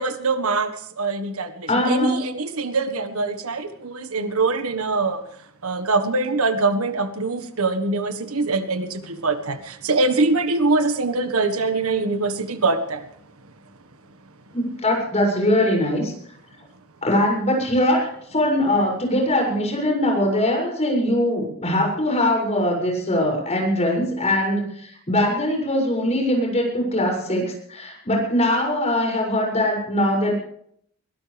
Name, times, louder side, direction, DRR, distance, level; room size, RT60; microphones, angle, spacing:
voice 1, 0.0-5.2 5.6-13.0, right 3 dB, 85° right, 9 dB, 1.6 m, -23 dB
voice 2, 1.7-2.2 14.5-16.1 17.0-30.3, left 1 dB, 30° left, 0 dB, 7.0 m, -21 dB
22.5 x 17.5 x 3.5 m, 0.66 s
head